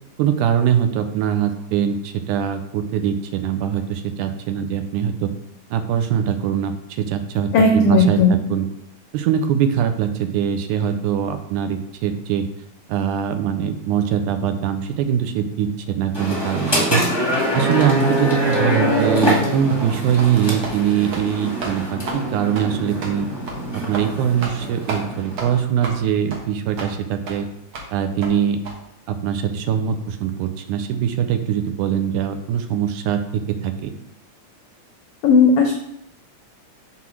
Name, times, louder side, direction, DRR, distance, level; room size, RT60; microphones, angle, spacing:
voice 1, 0.2-5.3 5.7-8.7 9.1-12.5 12.9-17.0 17.5-23.3 23.7-27.5 27.9-28.6 29.1-33.9, right 8 dB, 80° right, 7 dB, 2.0 m, -22 dB
voice 2, 7.5-8.4 35.2-35.7, left 3 dB, 85° left, 1 dB, 1.3 m, -15 dB
sound 1, 16.1-25.6, equal, 25° left, 0.5 m, -24 dB
sound 2, 19.7-19.8 20.2-20.3 20.6-20.8 21.1-21.3 21.6-21.7 22.1-22.2 22.5-22.7 23.0-23.1 23.5-23.6 23.9-24.1 24.4-24.6 24.9-25.0 25.4-25.5 25.8-26.0 26.3-26.4 26.8-26.9 27.3-27.4 27.7-27.9 28.2-28.3 28.6-28.7, right 3 dB, 60° right, 1.6 m, -31 dB
6.0 x 3.7 x 6.0 m, 0.78 s
omnidirectional pair, 3.6 m